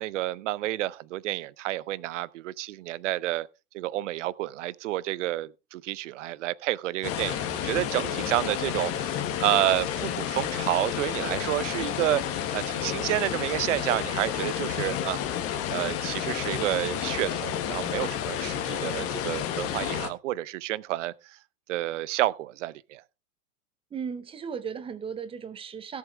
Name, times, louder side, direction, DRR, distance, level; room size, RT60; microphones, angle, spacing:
voice 1, 0.0-3.5 3.7-15.2 15.7-21.1 21.7-23.0, right 15 dB, 50° right, 0.7 m, -30 dB
sound 1, 7.0-20.1, left 10 dB, 30° left, 1.6 m, -31 dB
voice 2, 23.9-26.0, right 6 dB, 10° right, 0.8 m, -36 dB
16.5 x 7.5 x 3.4 m
hypercardioid pair, 115°, 47 cm